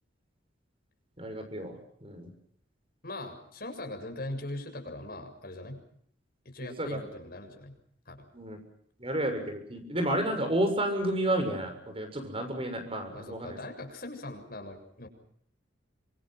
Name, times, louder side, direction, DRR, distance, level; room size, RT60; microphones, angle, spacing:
voice 1, 1.2-2.3 6.6-7.0 8.3-8.6 9.0-13.6, right 1 dB, 30° right, 7 dB, 6.9 m, -31 dB
voice 2, 3.0-5.8 6.5-7.7 8.1-8.3 13.1-15.1, left 1 dB, 50° left, 4 dB, 7.0 m, -40 dB
28.0 x 26.5 x 6.0 m, 0.66 s
head